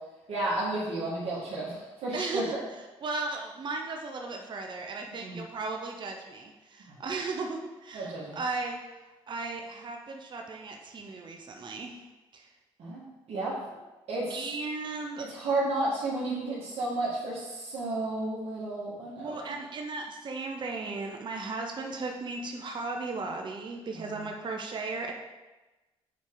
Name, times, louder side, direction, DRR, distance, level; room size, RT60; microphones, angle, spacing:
voice 1, 0.3-2.6 5.2-5.4 6.9-7.0 7.9-8.4 12.8-13.0 13.3-13.5 14.1-14.4 15.2-19.4 23.9-24.3, right 2 dB, 65° right, -8 dB, 1.9 m, -32 dB
voice 2, 2.1-2.5 3.0-8.8 9.3-11.9 12.3-12.5 14.3-15.3 19.2-25.1, right 3 dB, 45° right, 2 dB, 0.8 m, -36 dB
7.3 x 4.6 x 3.9 m, 1.1 s
supercardioid pair, 75°, 11 cm